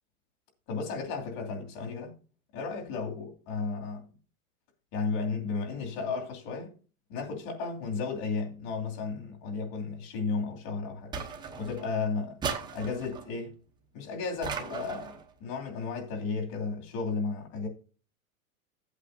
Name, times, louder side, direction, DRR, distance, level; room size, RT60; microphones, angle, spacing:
voice 1, 0.7-2.1 2.5-4.1 4.9-6.7 7.1-11.1 11.6-12.4 12.7-13.6 13.9-17.7, left 4 dB, 45° left, 2.8 m, -34 dB
sound 1, 11.1-11.9 12.4-13.3 14.4-15.2, right 5 dB, 10° right, 0.8 m, -36 dB
14.5 x 8.2 x 2.7 m
supercardioid pair, 150°, 42 cm